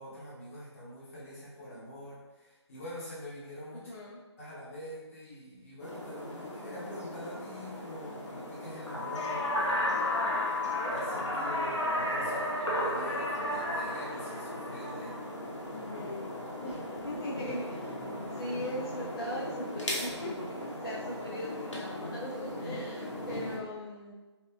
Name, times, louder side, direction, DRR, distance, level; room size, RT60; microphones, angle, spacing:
voice 1, 0.0-3.9 4.4-10.6 10.9-15.3, equal, 30° left, -9 dB, 0.9 m, -45 dB
voice 2, 3.7-4.2 15.7-24.1, equal, 50° left, -6 dB, 0.4 m, -40 dB
sound 1, 5.8-23.6, left 1 dB, 85° left, 0.7 m, -35 dB
2.6 x 2.3 x 2.3 m, 1.2 s
figure-of-eight pair, 150°, 15 cm